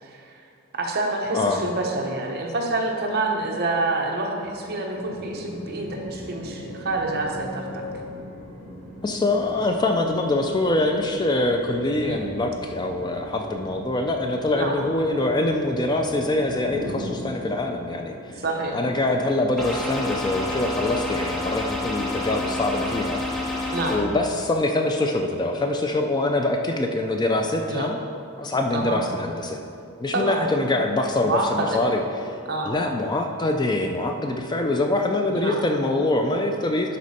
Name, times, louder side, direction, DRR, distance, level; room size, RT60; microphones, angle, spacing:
voice 1, 0.0-0.4 0.7-7.8 12.0-12.2 14.5-14.8 18.3-18.8 23.7-24.0 27.7-27.9 28.7-29.0 30.1-30.4 31.2-31.8 32.5-32.7 35.3-35.6, right 2 dB, 45° right, 0 dB, 0.9 m, -27 dB
sound 1, 5.0-24.1, equal, 50° left, 1.9 m, -40 dB
voice 2, 9.0-18.4 18.7-28.0 28.4-29.6 30.0-32.0 32.3-32.4 32.7-37.0, left 2 dB, 20° left, 4 dB, 0.3 m, -24 dB
sound 2, 19.6-24.0, left 2 dB, ahead, 0.9 m, -28 dB
11.5 x 4.2 x 4.2 m, 2.5 s
head